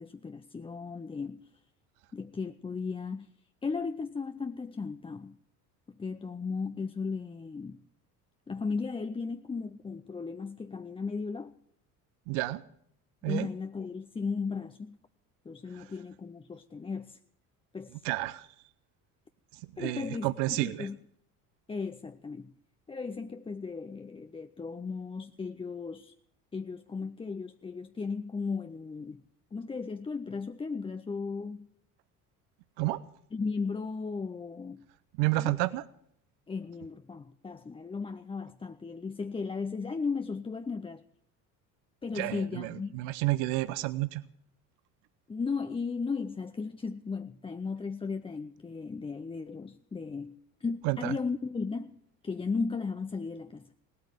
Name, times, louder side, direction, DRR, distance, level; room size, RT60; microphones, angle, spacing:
voice 1, 0.0-1.5 2.1-3.3 3.6-5.4 5.9-7.8 8.5-11.5 13.2-15.0 15.4-17.2 17.7-18.0 19.8-21.0 21.7-22.5 22.9-26.1 26.5-29.2 29.5-31.7 33.3-34.9 35.4-35.6 36.5-41.0 42.0-43.0 45.3-50.3 50.6-52.0 52.2-53.7, left 4 dB, 15° left, 0.5 m, -36 dB
voice 2, 12.3-12.6 13.2-13.5 15.8-15.9 18.0-18.5 19.8-20.9 32.8-33.0 35.2-35.8 42.1-44.2 50.8-51.2, right 19 dB, 65° right, 0.8 m, -30 dB
18.0 x 8.5 x 9.1 m
hypercardioid pair, 65°, 44 cm